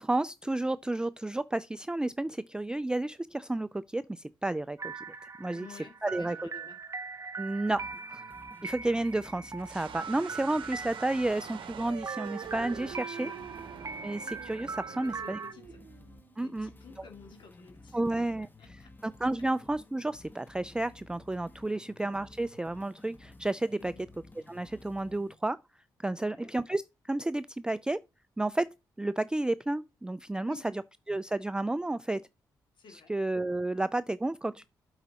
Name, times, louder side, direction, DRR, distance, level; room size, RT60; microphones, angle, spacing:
voice 1, 0.0-5.0 5.4-6.4 7.4-7.8 8.1-8.2 8.6-13.3 14.0-15.4 16.4-16.7 17.0-17.1 17.9-18.5 19.0-23.9 24.5-25.6 26.0-28.0 28.4-28.7 29.0-30.8 31.1-32.2 32.9-34.6, right 2 dB, 10° right, 0.3 m, -31 dB
sound 1, 4.8-15.5, right 4 dB, 35° right, 0.7 m, -41 dB
voice 2, 5.5-6.8 7.8-7.9 13.1-13.5 14.9-15.8 16.4-18.3 18.6-18.9 19.4-19.5 21.7-21.8 23.8-24.1 26.1-26.5 30.4-30.6 32.8-33.1, left 5 dB, 60° left, 2.2 m, -52 dB
sound 2, 7.7-25.4, left 2 dB, 20° left, 1.3 m, -54 dB
sound 3, 9.6-16.4, right 9 dB, 75° right, 0.7 m, -45 dB
7.9 x 4.8 x 4.1 m
supercardioid pair, 50°, 9 cm